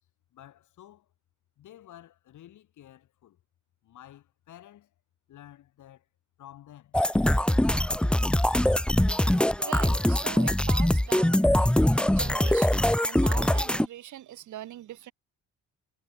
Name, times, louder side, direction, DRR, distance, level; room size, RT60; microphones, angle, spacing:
voice 1, 0.3-1.1 1.6-3.4 3.8-4.9 5.3-6.0 6.4-7.0, left 12 dB, 75° left, 5.9 m, -51 dB
sound 1, 6.9-13.9, left 1 dB, 5° left, 0.6 m, -23 dB
voice 2, 9.3-11.5 11.9-15.1, right 13 dB, 75° right, 2.5 m, -41 dB
cardioid pair, 90°, 30 cm